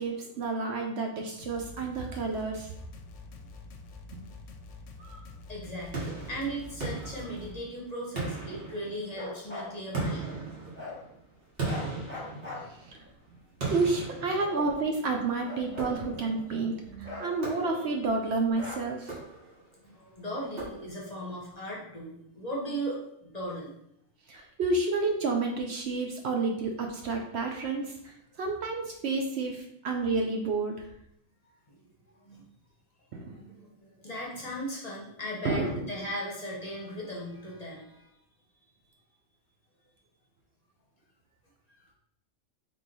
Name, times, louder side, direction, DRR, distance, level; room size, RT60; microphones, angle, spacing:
voice 1, 0.0-2.7 4.1-4.2 5.0-5.2 12.7-13.0 13.7-19.2 24.3-30.9 33.1-33.4 35.4-35.9, right 3 dB, 65° right, 2 dB, 0.8 m, -30 dB
sound 1, 1.4-7.6, left 3 dB, 70° left, 0.9 m, -47 dB
voice 2, 5.5-10.4 12.3-12.6 15.7-15.8 16.7-17.3 17.7-17.9 19.8-23.7 31.4-32.4 33.2-38.1, equal, 35° left, -4 dB, 0.9 m, -38 dB
sound 2, 5.9-7.7 8.2-9.3 9.9-13.0 13.6-15.0 15.8-16.4 17.4-18.1 19.0-19.7 20.6-21.2, right 3 dB, 50° right, 1.4 m, -37 dB
Bark, 9.1-9.7 10.7-11.0 11.6-13.1 13.9-15.0 15.4-16.6 17.0-18.0 18.5-19.2, left 3 dB, 10° left, 1.2 m, -42 dB
3.5 x 3.1 x 3.9 m, 0.74 s
omnidirectional pair, 1.3 m